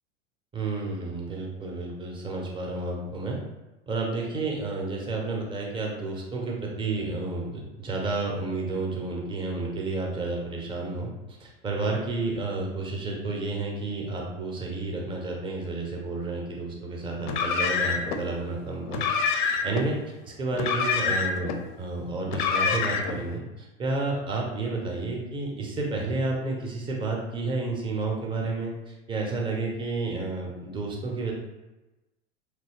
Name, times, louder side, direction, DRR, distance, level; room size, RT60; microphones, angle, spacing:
voice 1, 0.5-3.4 3.9-19.9 20.4-31.3, right 3 dB, 15° right, -1 dB, 0.5 m, -31 dB
Car, 17.2-18.2 18.9-19.8 20.5-21.6 22.3-23.2, left 5 dB, 40° left, 0.4 m, -26 dB
3.0 x 2.6 x 2.8 m, 1.0 s
figure-of-eight pair, 85°, 37 cm